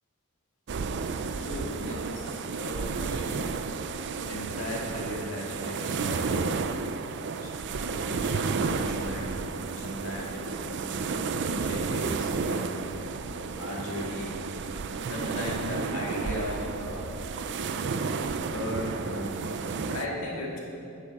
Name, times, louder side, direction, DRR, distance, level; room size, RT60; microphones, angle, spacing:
sound 1, 0.7-20.1, right 4 dB, 55° right, 0.4 m, -32 dB
voice 1, 1.4-3.7 4.2-6.6 7.4-7.5 7.8-9.5 9.8-13.1 13.6-14.4 14.7-17.2 17.7-17.9 18.5-19.3 19.9-20.6, left 1 dB, 65° left, -3 dB, 2.0 m, -37 dB
11.0 x 9.3 x 4.1 m, 2.8 s
head